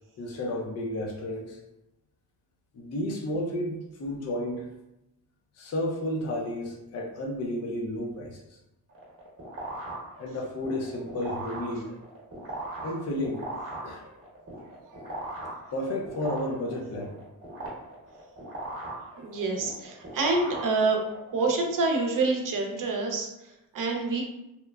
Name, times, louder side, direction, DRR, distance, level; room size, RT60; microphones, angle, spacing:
voice 1, 0.2-1.6 2.7-4.7 5.6-8.6 10.2-11.9 12.8-13.5 13.8-14.0 15.7-17.1, left 1 dB, 40° left, -1 dB, 0.5 m, -32 dB
sound 1, 8.9-21.3, right 2 dB, 35° right, 1.0 m, -39 dB
voice 2, 14.9-15.2 19.2-21.0 21.3-24.2, right 3 dB, 55° right, 1 dB, 0.6 m, -27 dB
2.9 x 2.0 x 2.3 m, 0.91 s
cardioid pair, 90°, 40 cm